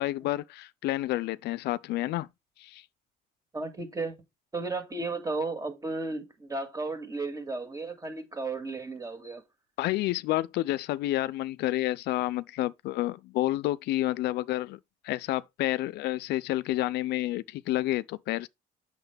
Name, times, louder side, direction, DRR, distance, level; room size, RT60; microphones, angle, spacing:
voice 1, 0.0-2.3 2.6-2.8 9.8-14.8 15.0-18.5, left 16 dB, 75° left, 0.5 m, -29 dB
voice 2, 3.5-4.1 4.5-9.4, right 3 dB, 20° right, 2.3 m, -34 dB
8.1 x 6.5 x 3.4 m
cardioid pair, 110°, 17 cm